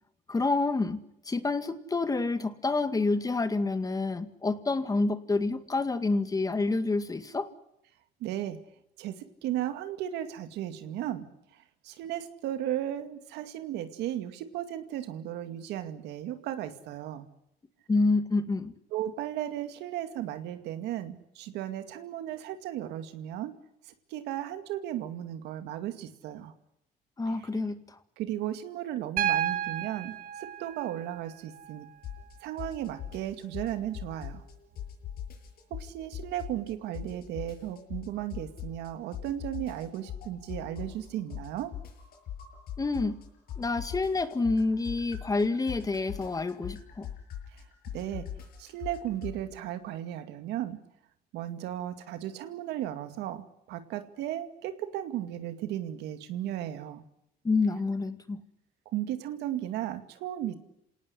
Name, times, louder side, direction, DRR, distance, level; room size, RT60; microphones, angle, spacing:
voice 1, 0.3-7.5 17.9-18.7 27.2-28.0 42.8-43.2 43.6-47.1 57.4-58.4, left 3 dB, 20° left, 10 dB, 1.9 m, -28 dB
voice 2, 8.2-8.6 9.0-17.3 18.9-23.5 23.8-26.5 27.4-27.5 28.2-31.9 32.4-34.4 35.7-41.7 47.5-47.6 47.9-48.3 48.6-50.8 51.3-57.0 58.9-60.5, right 12 dB, 85° right, 8 dB, 2.3 m, -35 dB
Piano, 29.2-33.2 34.7-34.8, right 10 dB, 55° right, 1.8 m, -34 dB
sound 1, 32.0-32.3 32.6-34.5 34.8-36.7 36.9-38.9 39.1-43.2 43.5-49.4, left 10 dB, 65° left, 6.7 m, -40 dB
27.0 x 18.5 x 10.0 m, 0.81 s
cardioid pair, 110°, 17 cm